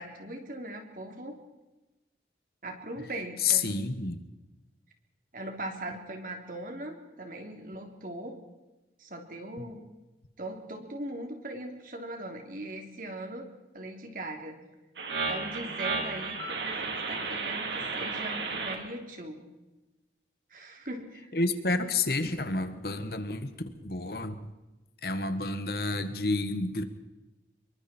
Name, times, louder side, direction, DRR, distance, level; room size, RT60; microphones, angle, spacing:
voice 1, 0.0-1.4 2.6-3.7 5.3-8.4 9.0-9.8 10.4-13.5 13.7-14.6 15.3-19.4 20.5-21.3, right 1 dB, 50° right, 3 dB, 3.3 m, -40 dB
voice 2, 3.4-4.3 21.3-23.5 23.8-24.4 25.0-26.8, left 3 dB, 55° left, 9 dB, 1.6 m, -29 dB
sound 1, 15.0-18.8, right 4 dB, 85° right, 3.3 m, -33 dB
26.5 x 23.0 x 4.4 m, 1.1 s
head